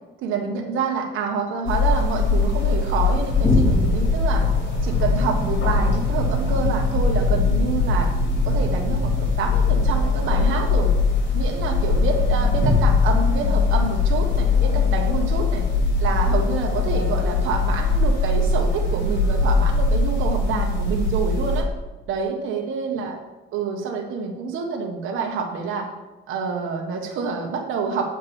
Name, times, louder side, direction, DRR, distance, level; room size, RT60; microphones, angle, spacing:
voice 1, 0.2-4.4 4.8-8.1 8.4-10.9 11.3-15.7 16.0-21.7 22.1-23.2 23.5-25.9 26.3-28.1, right 5 dB, 85° right, 2 dB, 1.4 m, -27 dB
sound 1, 1.7-21.6, left 3 dB, 60° left, 3.6 m, -21 dB
8.3 x 5.3 x 7.0 m, 1.1 s
cardioid pair, 90°, 20 cm